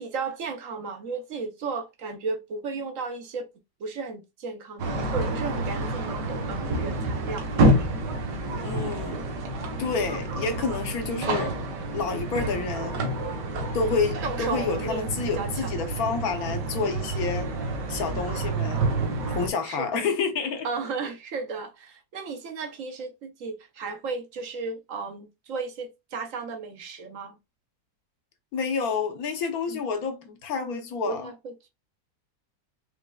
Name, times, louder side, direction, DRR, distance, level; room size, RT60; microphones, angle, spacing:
voice 1, 0.0-3.5 3.8-7.5 13.8-15.8 19.6-20.2 20.6-27.4 29.7-29.8 31.1-31.7, right 4 dB, 60° right, 1.0 m, -34 dB
sound 1, 4.8-19.5, right 2 dB, 85° right, 1.6 m, -28 dB
voice 2, 8.6-9.2 9.8-11.6 11.9-13.0 13.7-17.6 17.9-18.9 19.3-20.7 28.5-31.3, left 5 dB, 65° left, 1.3 m, -29 dB
5.3 x 3.2 x 2.3 m
omnidirectional pair, 1.8 m